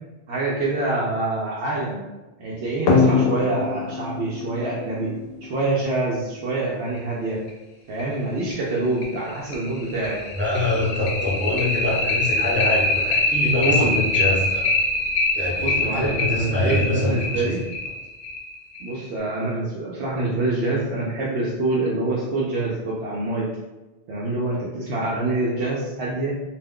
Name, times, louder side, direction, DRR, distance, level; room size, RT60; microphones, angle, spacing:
voice 1, 0.3-2.0 2.4-5.1 5.4-7.4 7.9-10.2 13.6-14.0 15.6-17.6 18.8-23.5 24.1-26.3, right 2 dB, 85° right, -6 dB, 0.9 m, -26 dB
sound 1, 2.9-6.0 7.5-7.6 8.0-8.1 8.5-8.6 9.0-19.1, left 3 dB, 70° left, 0.8 m, -23 dB
voice 2, 10.4-14.7 15.3-17.5, left 2 dB, 15° right, -7 dB, 0.5 m, -24 dB
2.4 x 2.2 x 3.5 m, 1.1 s
omnidirectional pair, 1.1 m